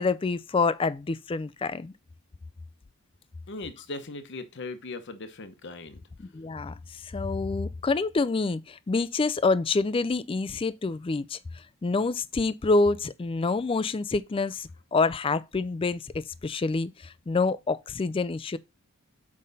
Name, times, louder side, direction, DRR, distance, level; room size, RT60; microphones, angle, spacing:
voice 1, 0.0-1.9 6.2-18.6, left 3 dB, 25° left, 0.3 m, -27 dB
voice 2, 3.5-6.0, left 3 dB, 55° left, 0.9 m, -39 dB
7.4 x 5.3 x 4.0 m
head